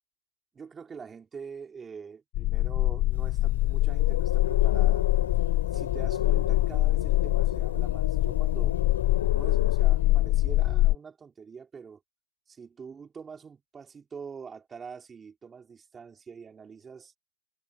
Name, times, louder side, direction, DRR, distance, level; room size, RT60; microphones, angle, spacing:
voice 1, 0.5-8.8 9.3-12.0 12.5-17.1, right 6 dB, 15° right, 3.3 m, -45 dB
sound 1, 2.3-10.9, left 17 dB, 40° left, 1.1 m, -24 dB
sound 2, 3.1-10.8, left 9 dB, 85° left, 3.0 m, -35 dB
hypercardioid pair, 125°, 0 cm